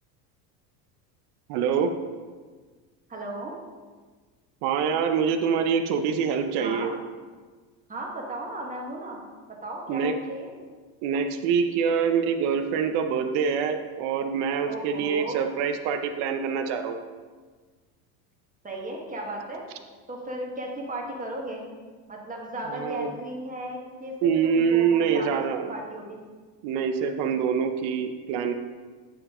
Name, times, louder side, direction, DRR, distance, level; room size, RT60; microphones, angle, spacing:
voice 1, 1.5-1.9 4.6-6.9 9.9-10.2 11.0-17.0 22.7-23.1 24.2-25.7 26.6-28.5, right 6 dB, 60° right, 7 dB, 0.7 m, -25 dB
voice 2, 3.1-3.6 6.6-6.9 7.9-9.2 9.6-10.5 14.6-15.4 18.6-19.6 20.1-21.7 22.1-25.4 25.7-26.2, right 1 dB, 15° right, -1 dB, 1.5 m, -35 dB
9.0 x 4.7 x 3.7 m, 1.4 s
supercardioid pair, 105°, 46 cm